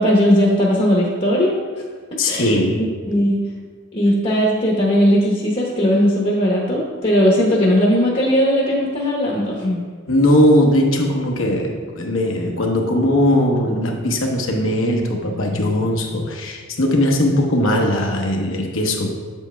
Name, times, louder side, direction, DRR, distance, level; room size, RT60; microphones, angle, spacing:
voice 1, 0.0-1.8 2.2-3.4 3.9-9.8, equal, 35° left, -4 dB, 0.9 m, -18 dB
voice 2, 2.2-2.9 10.1-19.1, left 1 dB, 80° left, 2 dB, 0.9 m, -19 dB
8.3 x 7.3 x 2.2 m, 1.5 s
head